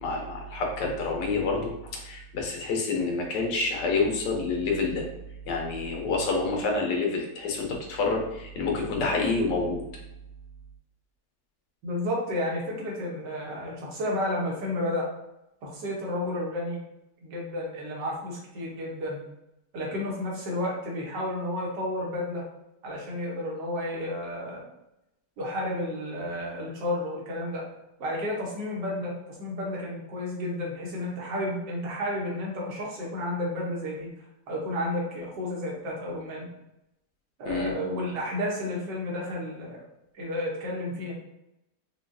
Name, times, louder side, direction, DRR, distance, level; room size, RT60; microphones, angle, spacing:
voice 1, 0.0-5.1 5.5-9.8 37.4-37.7, left 3 dB, 85° left, 0 dB, 1.4 m, -28 dB
voice 2, 11.8-15.1 15.6-16.8 17.2-19.2 19.7-22.4 22.8-24.6 25.4-27.6 28.0-34.1 34.5-36.5 37.4-39.8 40.1-41.1, left 1 dB, 85° right, -3 dB, 1.7 m, -31 dB
4.9 x 2.3 x 2.6 m, 0.87 s
omnidirectional pair, 1.8 m